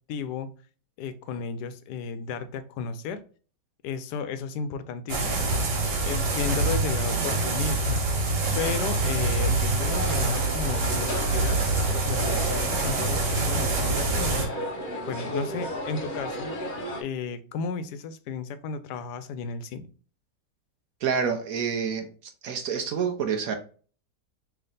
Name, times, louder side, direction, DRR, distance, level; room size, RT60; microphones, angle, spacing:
voice 1, 0.1-0.5 1.0-3.2 3.8-5.4 6.0-8.1 8.6-11.6 12.1-14.4 15.1-16.5 17.0-19.9, left 5 dB, 75° left, 1.1 m, -33 dB
sound 1, 5.1-14.5, right 2 dB, 80° right, 1.8 m, -25 dB
sound 2, 9.8-17.0, equal, 50° left, 0.6 m, -34 dB
voice 2, 21.0-22.1 22.4-23.6, right 6 dB, 65° right, 1.0 m, -27 dB
3.4 x 3.2 x 3.8 m
omnidirectional pair, 1.8 m